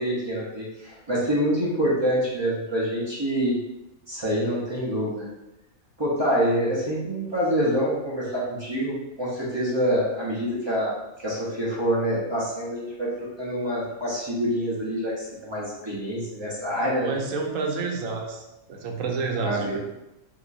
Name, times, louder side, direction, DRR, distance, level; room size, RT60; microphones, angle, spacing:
voice 1, 0.0-3.6 4.1-5.3 6.0-13.1 13.4-17.1 19.4-19.8, equal, 30° right, -7 dB, 0.5 m, -26 dB
voice 2, 17.0-19.8, right 4 dB, 75° right, 2 dB, 1.0 m, -29 dB
3.6 x 2.9 x 2.5 m, 0.93 s
omnidirectional pair, 1.5 m